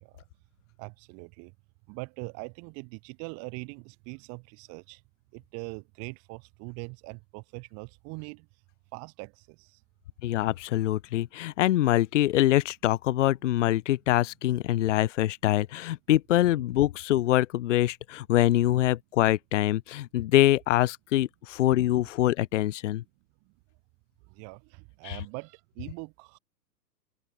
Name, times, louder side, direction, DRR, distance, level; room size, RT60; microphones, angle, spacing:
voice 1, 0.8-1.5 1.9-5.0 5.3-8.5 8.9-9.8 24.3-26.4, right 33 dB, 30° right, 2.0 m, -42 dB
voice 2, 10.2-23.0 25.0-25.2, left 14 dB, 45° left, 0.7 m, -24 dB
figure-of-eight pair, 115°, 50 cm